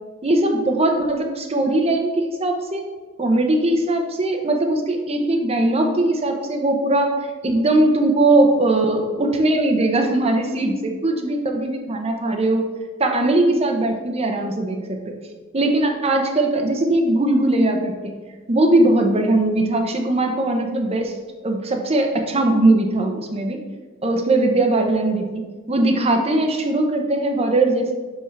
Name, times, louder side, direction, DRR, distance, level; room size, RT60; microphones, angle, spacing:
voice 1, 0.2-2.8 3.2-7.1 7.4-12.7 13.0-15.1 15.5-18.1 18.5-21.1 21.4-23.6 24.0-27.9, right 2 dB, 30° right, 3 dB, 0.8 m, -20 dB
6.2 x 5.6 x 3.2 m, 1.4 s
head